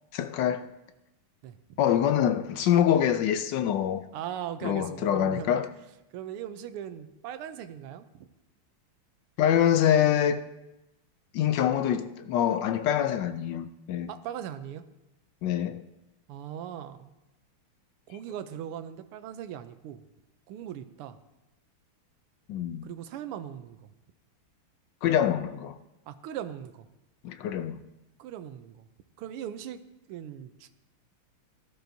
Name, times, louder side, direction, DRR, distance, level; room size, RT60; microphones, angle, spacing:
voice 1, 0.1-0.7 1.8-4.0 4.6-5.7 9.4-10.4 11.3-14.1 15.4-15.8 22.5-22.9 25.0-25.8 27.2-27.8, left 10 dB, 75° left, 1.0 m, -25 dB
voice 2, 4.1-5.5 6.1-8.3 14.1-14.8 16.3-17.1 18.1-20.0 20.5-21.2 22.8-23.9 26.1-26.9 28.2-28.8 29.2-29.8 30.1-30.7, right 10 dB, 90° right, 1.6 m, -39 dB
18.0 x 12.0 x 2.7 m
omnidirectional pair, 2.4 m